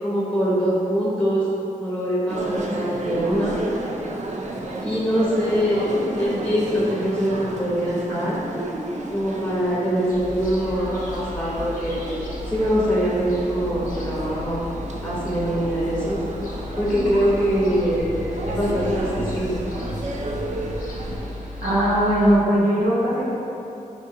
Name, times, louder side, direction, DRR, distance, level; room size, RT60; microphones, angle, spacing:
voice 1, 0.0-3.6 4.8-5.9 6.2-8.4 9.1-12.0 12.5-14.6 15.0-16.3 16.8-18.1 18.5-19.6, equal, 10° left, -7 dB, 0.9 m, -23 dB
sound 1, 2.3-21.6, right 2 dB, 50° right, 0.4 m, -32 dB
sound 2, 10.1-22.4, left 2 dB, 65° left, 0.6 m, -35 dB
voice 2, 21.6-23.4, equal, 80° right, -9 dB, 0.9 m, -19 dB
4.5 x 2.3 x 2.8 m, 2.9 s
cardioid pair, 45°, 15 cm